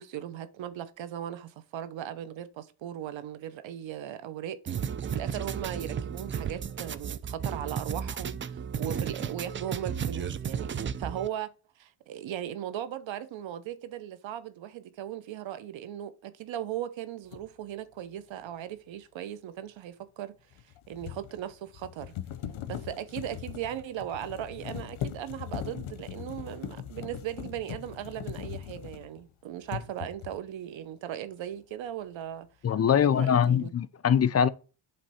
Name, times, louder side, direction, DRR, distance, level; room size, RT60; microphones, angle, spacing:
voice 1, 0.0-10.7 11.0-20.3 20.9-22.1 22.7-32.5 32.9-33.7, right 11 dB, 75° right, 0.9 m, -38 dB
sound 1, 4.7-11.3, right 7 dB, 30° right, 0.3 m, -33 dB
sound 2, 17.3-17.5 20.5-29.3 29.6-30.5, left 10 dB, 85° left, 0.8 m, -40 dB
voice 2, 32.6-34.5, left 8 dB, 35° left, 0.4 m, -23 dB
7.7 x 3.3 x 4.2 m
cardioid pair, 100°, 45 cm